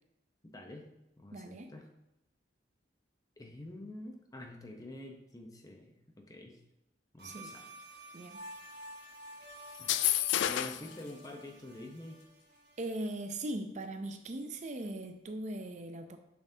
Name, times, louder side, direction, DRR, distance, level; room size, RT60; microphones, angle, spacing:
voice 1, 0.5-0.9 1.2-1.9 3.4-6.6 7.1-7.7 9.8-10.0 10.4-12.2, left 1 dB, 20° left, 3 dB, 0.7 m, -47 dB
voice 2, 1.3-1.7 7.2-7.5 8.1-8.4 12.8-16.2, right 1 dB, 40° right, 7 dB, 0.4 m, -39 dB
sound 1, 7.2-13.1, right 1 dB, 55° right, 1.1 m, -51 dB
sound 2, 9.7-10.9, left 12 dB, 75° left, 0.3 m, -29 dB
7.1 x 6.0 x 2.7 m, 0.89 s
head